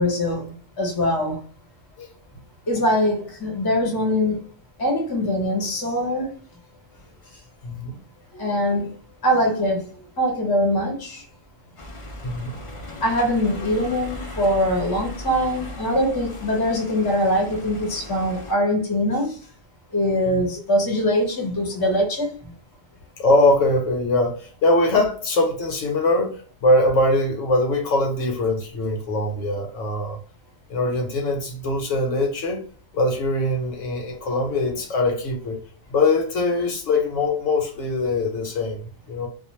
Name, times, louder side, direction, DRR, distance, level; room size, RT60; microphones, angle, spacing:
voice 1, 0.0-1.4 2.7-4.4 4.8-6.3 8.3-8.9 9.2-9.9 10.2-11.2 13.0-19.4 19.9-22.5, equal, 20° left, 0.7 m, -22 dB
voice 2, 7.6-8.0 12.2-12.6 20.3-20.4 23.2-30.2 30.7-32.6 32.9-35.6 35.9-39.3, left 2 dB, 75° left, 1.1 m, -22 dB
sound 1, 11.8-18.5, left 1 dB, 50° left, 0.3 m, -37 dB
2.4 x 2.3 x 3.0 m
omnidirectional pair, 1.3 m